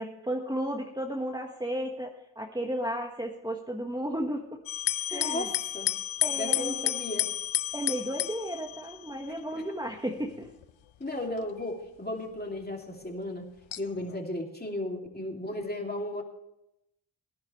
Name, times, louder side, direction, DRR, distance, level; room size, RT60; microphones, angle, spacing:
voice 1, 0.0-4.6 5.1-5.5 6.2-6.9 7.7-10.5, equal, 10° right, 1 dB, 1.4 m, -33 dB
sound 1, 4.7-9.4 10.2-10.7 11.4-11.5 13.7-14.2, left 13 dB, 80° left, 0.7 m, -31 dB
voice 2, 5.1-5.9 6.4-7.3 9.5-9.6 11.0-13.5 13.8-16.2, left 1 dB, 20° left, 2 dB, 2.6 m, -35 dB
18.5 x 10.5 x 3.2 m, 0.85 s
wide cardioid pair, 75°, 46 cm